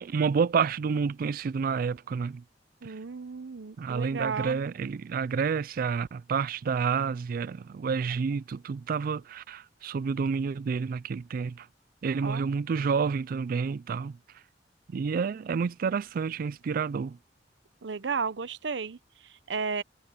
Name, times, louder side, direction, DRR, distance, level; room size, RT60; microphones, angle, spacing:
voice 1, 0.0-2.4 2.9-3.0 3.8-11.7 12.0-14.2 14.9-17.2, right 5 dB, 55° right, 0.3 m, -29 dB
voice 2, 2.8-4.6 12.2-12.5 17.8-19.8, right 5 dB, 80° right, 0.7 m, -34 dB
head